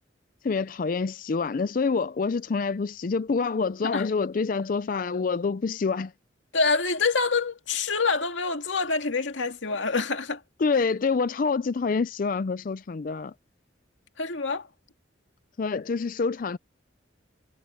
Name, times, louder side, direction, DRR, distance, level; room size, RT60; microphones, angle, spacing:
voice 1, 0.4-6.1 10.6-13.3 15.6-16.6, left 4 dB, 45° left, 0.4 m, -27 dB
voice 2, 6.5-10.4 14.2-14.7, left 4 dB, 85° left, 2.2 m, -26 dB
head